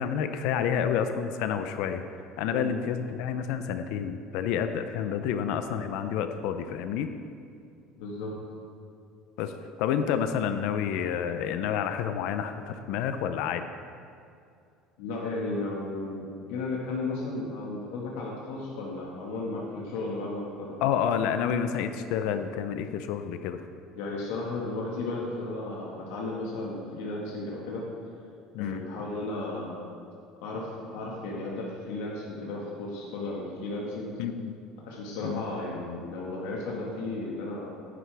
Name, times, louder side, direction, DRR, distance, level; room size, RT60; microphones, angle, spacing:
voice 1, 0.0-2.0 2.4-7.1 9.4-9.5 9.8-13.7 20.8-23.6 28.5-28.8 34.2-34.5 35.2-35.4, left 8 dB, 60° left, 8 dB, 0.5 m, -29 dB
voice 2, 8.0-8.3 15.0-20.8 23.9-27.9 28.6-29.8 30.4-34.1 34.8-37.7, left 2 dB, 80° left, -3 dB, 1.6 m, -34 dB
9.8 x 9.5 x 3.4 m, 2.4 s
cardioid pair, 175°, 0 cm